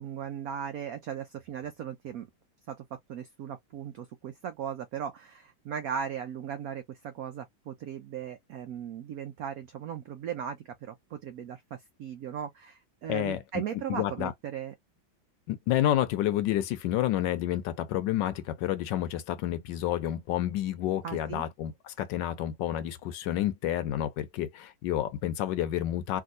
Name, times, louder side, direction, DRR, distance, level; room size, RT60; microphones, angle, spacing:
voice 1, 0.0-2.3 2.7-2.8 3.1-14.7 21.0-21.4, right 8 dB, 85° right, 0.8 m, -37 dB
voice 2, 13.1-13.4 13.9-14.3 15.5-26.2, left 12 dB, 75° left, 1.2 m, -29 dB
3.5 x 2.6 x 2.5 m
omnidirectional pair, 2.1 m